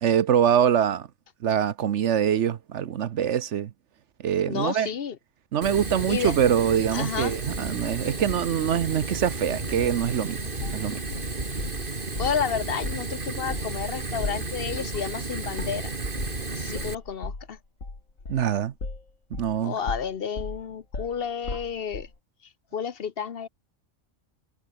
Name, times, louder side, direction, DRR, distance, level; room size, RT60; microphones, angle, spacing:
voice 1, 0.0-1.1 1.4-3.7 4.2-4.9 5.5-10.4 10.7-11.0 18.3-18.7 19.4-19.7, right 9 dB, 65° right, 1.0 m, -24 dB
voice 2, 4.5-5.2 6.1-6.4 6.9-7.3 12.2-15.9 16.5-17.6 19.6-22.1 22.7-23.5, left 7 dB, 50° left, 1.0 m, -31 dB
Fire, 5.6-16.9, right 3 dB, 40° right, 2.6 m, -32 dB
sound 1, 10.0-11.8 12.2-12.4 12.8-13.0 13.3-19.6 19.9-22.1, left 3 dB, 70° left, 4.0 m, -36 dB
omnidirectional pair, 1.4 m